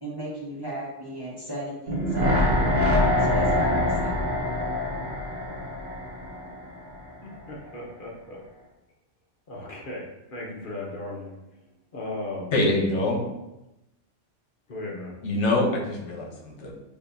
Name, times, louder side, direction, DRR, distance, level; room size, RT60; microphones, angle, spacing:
voice 1, 0.0-2.7 3.2-4.2, right 1 dB, 20° right, 0.9 m, -35 dB
sound 1, 1.9-7.0 7.3-7.4, left 1 dB, 60° right, 1.0 m, -24 dB
voice 2, 7.2-8.4 9.5-11.3 11.9-12.5 14.7-15.2, left 2 dB, 50° left, 0.9 m, -36 dB
voice 3, 12.5-13.2 15.2-16.7, left 2 dB, 75° left, 1.1 m, -24 dB
6.6 x 2.8 x 2.6 m
omnidirectional pair, 1.2 m